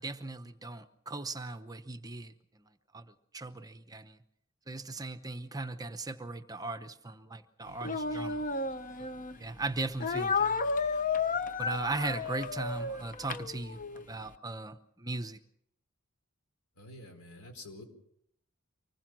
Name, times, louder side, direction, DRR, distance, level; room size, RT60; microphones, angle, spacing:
voice 1, 0.0-4.2 4.7-8.4 9.0-10.7 11.6-13.8 14.1-15.4, right 3 dB, 15° right, 9 dB, 0.8 m, -38 dB
Speech, 7.8-9.4 10.0-14.0, left 4 dB, 40° left, 0.8 m, -32 dB
voice 2, 16.8-17.8, left 1 dB, 70° left, 5 dB, 4.6 m, -48 dB
25.0 x 20.5 x 6.1 m, 0.72 s
head